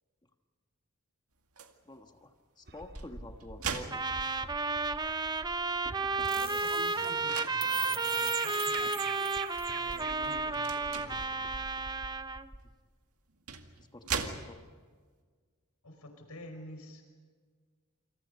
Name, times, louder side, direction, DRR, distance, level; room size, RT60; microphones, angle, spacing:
sound 1, 1.6-1.8 2.7-4.7 5.3-5.4 5.7-7.6 8.5-8.9 9.5-9.7 10.5-11.2 12.6-12.7 13.3-14.9, right 6 dB, 75° right, 2.1 m, -40 dB
voice 1, 1.8-4.0 12.6-12.7 13.8-14.6, left 1 dB, 20° left, 5 dB, 1.3 m, -49 dB
sound 2, 2.7-12.7, right 6 dB, 45° right, 1.5 m, -43 dB
Trumpet, 3.9-12.5, right 3 dB, 20° right, 0.7 m, -32 dB
voice 2, 6.1-9.2 9.7-11.7 15.8-17.0, left 1 dB, 80° left, 5 dB, 5.2 m, -49 dB
28.0 x 27.0 x 5.4 m, 1.6 s
head